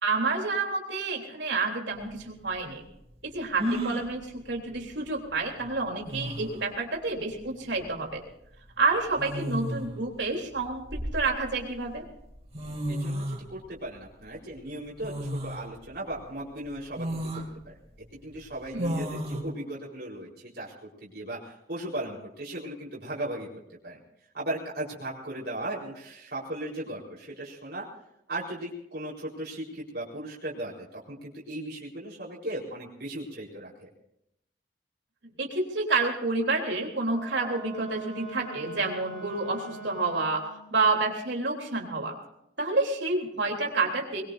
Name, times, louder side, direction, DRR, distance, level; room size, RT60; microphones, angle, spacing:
voice 1, 0.0-2.9 3.2-8.2 8.8-12.1 18.7-19.0 35.2-42.2 42.6-44.2, right 3 dB, 80° right, 1 dB, 3.5 m, -29 dB
sound 1, 2.0-2.1 3.6-4.1 5.6-5.7 6.1-6.5 7.9-8.1 9.2-9.9 10.6-11.6 12.3-12.4 12.5-13.4 15.0-15.6 16.1-16.2 17.0-17.5 18.8-19.4, equal, 35° right, 2.8 m, -32 dB
voice 2, 12.9-17.8 18.1-23.5 23.8-24.0 24.3-27.9 28.3-33.9, right 1 dB, 60° right, -6 dB, 4.3 m, -37 dB
Wind instrument woodwind instrument, 37.0-40.7, right 2 dB, 75° left, 6.9 m, -43 dB
22.0 x 22.0 x 2.7 m, 0.80 s
head